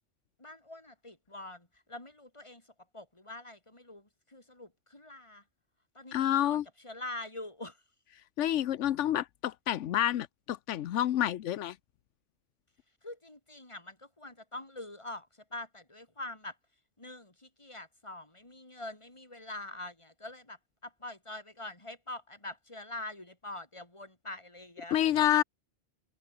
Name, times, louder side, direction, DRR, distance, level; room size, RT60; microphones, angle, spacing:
voice 1, 0.4-5.4 5.9-7.8 13.0-16.6 17.0-25.4, left 1 dB, 25° left, 3.4 m, -44 dB
voice 2, 6.1-6.6 8.4-11.7 24.9-25.4, left 12 dB, 90° left, 1.0 m, -28 dB
omnidirectional pair, 1.2 m